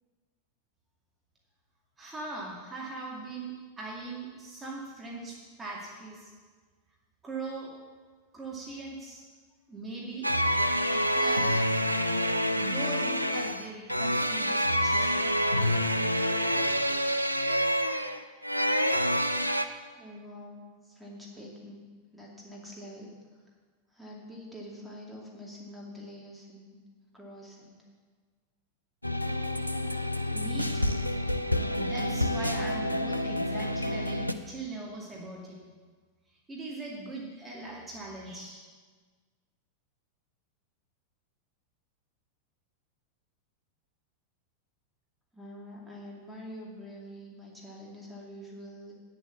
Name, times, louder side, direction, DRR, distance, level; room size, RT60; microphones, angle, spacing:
voice 1, 2.0-6.3 7.2-7.8 8.3-9.2 9.7-10.3 10.6-11.6 12.5-15.3 30.0-31.0 31.7-35.6 36.3-38.6, right 2 dB, 15° right, -4 dB, 2.3 m, -40 dB
sound 1, 10.2-19.6, equal, 90° right, 0.5 m, -27 dB
voice 2, 19.9-21.8 22.1-23.4 23.9-26.8 27.1-27.8 45.3-48.9, equal, 5° left, -4 dB, 2.5 m, -46 dB
sound 2, 29.0-34.3, left 1 dB, 90° left, 0.5 m, -30 dB
9.6 x 7.7 x 7.2 m, 1.5 s
figure-of-eight pair, 90°, 0 cm